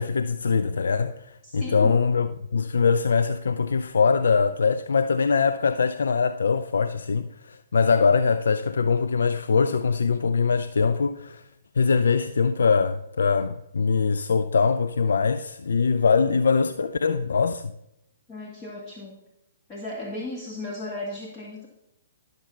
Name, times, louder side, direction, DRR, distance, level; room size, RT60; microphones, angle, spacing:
voice 1, 0.0-11.4 11.8-17.7, left 5 dB, 70° left, 0.4 m, -22 dB
voice 2, 1.4-2.0 18.3-19.2 19.7-21.7, left 2 dB, 20° left, 1.8 m, -35 dB
12.0 x 6.6 x 5.7 m
figure-of-eight pair, 125°, 0 cm